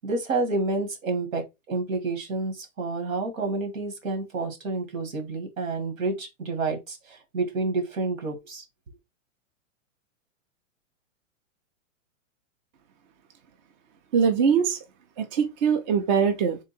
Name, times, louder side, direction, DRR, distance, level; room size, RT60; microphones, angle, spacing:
voice 1, 0.0-8.6, right 3 dB, 80° right, 1.8 m, -29 dB
voice 2, 14.1-14.8 15.2-16.6, right 6 dB, 35° right, 0.6 m, -22 dB
3.7 x 2.4 x 4.1 m
hypercardioid pair, 150°, 39 cm